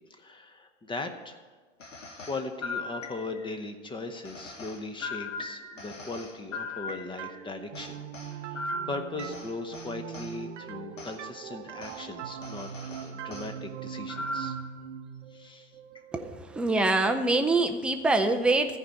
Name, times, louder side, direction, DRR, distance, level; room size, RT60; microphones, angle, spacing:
voice 1, 0.1-1.4 2.2-8.0 8.3-14.6 15.3-15.7, left 3 dB, 15° left, 7 dB, 0.9 m, -39 dB
sound 1, 1.8-3.6 4.2-7.4 7.7-10.4 11.0-11.2 11.8-12.0 12.4-13.5 14.1-14.7, left 2 dB, 80° left, 1.4 m, -38 dB
sound 2, 7.2-16.7, right 8 dB, 70° right, 0.9 m, -41 dB
voice 2, 16.1-18.8, right 2 dB, 5° right, 6 dB, 0.5 m, -25 dB
14.0 x 5.2 x 8.4 m, 1.4 s
figure-of-eight pair, 90°, 38 cm